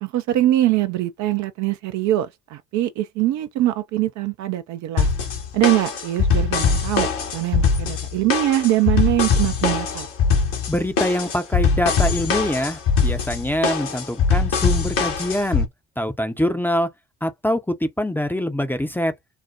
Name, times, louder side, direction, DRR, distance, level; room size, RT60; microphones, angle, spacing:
voice 1, 0.0-5.1 5.5-10.1, right 14 dB, 50° right, 0.5 m, -22 dB
sound 1, 5.0-15.7, left 5 dB, 65° left, 1.3 m, -21 dB
voice 2, 10.7-15.7 16.0-16.9 17.2-19.1, left 1 dB, 5° left, 0.6 m, -24 dB
4.2 x 2.1 x 2.4 m
figure-of-eight pair, 50°, 38 cm